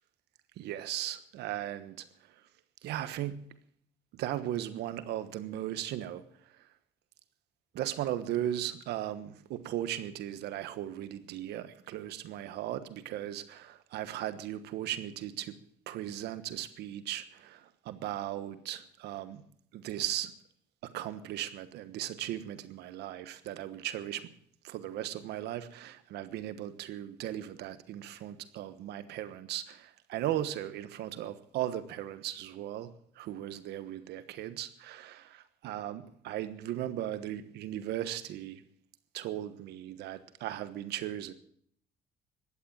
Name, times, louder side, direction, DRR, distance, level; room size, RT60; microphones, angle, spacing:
voice 1, 0.6-2.1 2.8-3.4 4.1-6.2 7.7-15.6 15.9-19.4 19.7-20.3 20.8-24.3 24.6-32.9 33.1-38.6 39.1-41.3, right 12 dB, 80° right, 1.3 m, -37 dB
15.5 x 11.5 x 7.2 m
cardioid pair, 110°, 17 cm